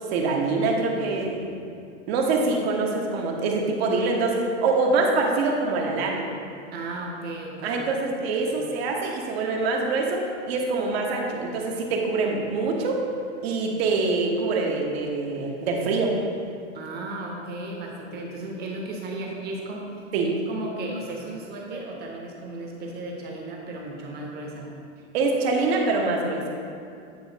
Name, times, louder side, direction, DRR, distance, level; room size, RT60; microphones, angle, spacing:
voice 1, 0.1-1.4 2.1-6.2 7.6-13.0 13.4-16.1 20.1-20.3 25.1-26.4, right 3 dB, 55° right, 0 dB, 1.1 m, -24 dB
voice 2, 6.7-7.8 8.4-8.6 16.7-24.7, right 2 dB, 25° right, -1 dB, 1.0 m, -35 dB
9.2 x 3.1 x 4.0 m, 2.5 s
hypercardioid pair, 130°, 36 cm